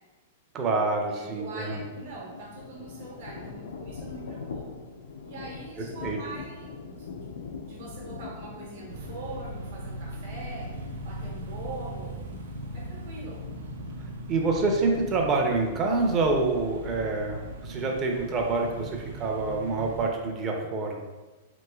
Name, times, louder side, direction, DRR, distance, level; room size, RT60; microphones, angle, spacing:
voice 1, 0.5-1.8 5.8-6.2 14.3-21.0, right 3 dB, 25° right, 1 dB, 0.4 m, -27 dB
voice 2, 1.1-4.7 5.2-7.1 7.6-10.7 11.0-12.2 12.7-13.5, right 3 dB, 60° right, -4 dB, 0.9 m, -42 dB
sound 1, 1.6-16.1, left 5 dB, 90° left, 0.4 m, -43 dB
sound 2, 8.9-20.1, right 1 dB, 85° right, 0.4 m, -39 dB
3.0 x 3.0 x 2.3 m, 1.2 s
hypercardioid pair, 150°, 0 cm